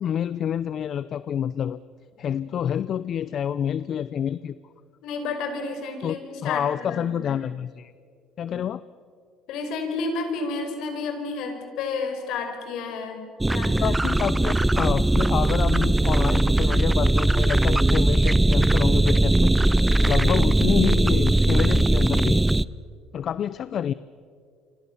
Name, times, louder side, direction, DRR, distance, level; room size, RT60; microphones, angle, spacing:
voice 1, 0.0-1.8 2.2-4.6 6.0-7.9 8.4-8.8 13.8-19.5 20.0-22.4 23.1-23.9, left 9 dB, 50° left, 16 dB, 0.6 m, -28 dB
voice 2, 5.0-7.3 8.5-8.6 9.5-14.0, left 4 dB, 70° left, 5 dB, 5.7 m, -31 dB
sound 1, 13.4-22.6, right 2 dB, 10° right, 0.6 m, -20 dB
28.5 x 25.0 x 7.1 m, 2.2 s
supercardioid pair, 90°, 0 cm